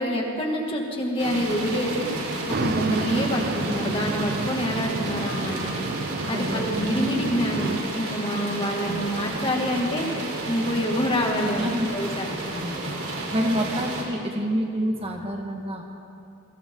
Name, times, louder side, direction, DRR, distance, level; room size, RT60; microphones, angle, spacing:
voice 1, 0.0-2.1 2.6-5.7 6.3-11.7 11.9-12.3, equal, 25° left, 0 dB, 2.5 m, -26 dB
sound 1, 1.2-14.0, right 2 dB, 75° right, 4.3 m, -32 dB
sound 2, 2.5-7.8, right 3 dB, 50° right, 0.6 m, -31 dB
sound 3, 4.4-12.9, left 3 dB, 70° left, 6.9 m, -47 dB
voice 2, 6.3-7.0 8.8-9.1 11.6-11.9 12.5-12.9 13.3-15.8, equal, 30° right, 1 dB, 1.9 m, -28 dB
29.0 x 23.5 x 4.0 m, 2.7 s
head